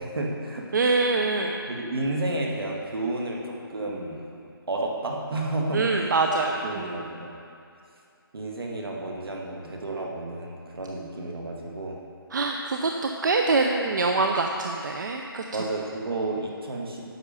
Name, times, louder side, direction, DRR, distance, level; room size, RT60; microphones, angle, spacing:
voice 1, 0.0-0.6 1.7-4.2 4.7-7.3 8.3-12.0 15.5-17.0, right 2 dB, 75° right, 0 dB, 1.9 m, -31 dB
voice 2, 0.7-1.6 5.7-7.2 12.3-15.4, right 3 dB, 50° right, 2 dB, 0.6 m, -25 dB
9.8 x 6.8 x 5.4 m, 2.5 s
hypercardioid pair, 170°, 13 cm